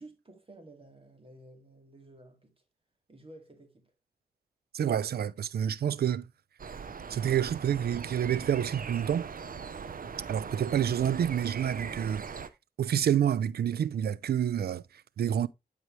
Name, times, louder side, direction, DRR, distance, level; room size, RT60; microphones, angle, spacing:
voice 1, 0.0-2.5 3.1-3.9, right 2 dB, 35° right, 2.2 m, -52 dB
voice 2, 4.7-6.3 7.1-9.3 10.3-12.3 12.8-15.5, right 9 dB, 90° right, 0.4 m, -28 dB
sound 1, 6.6-12.5, right 6 dB, 60° right, 0.8 m, -40 dB
11.0 x 4.9 x 3.1 m
wide cardioid pair, 75°, 16 cm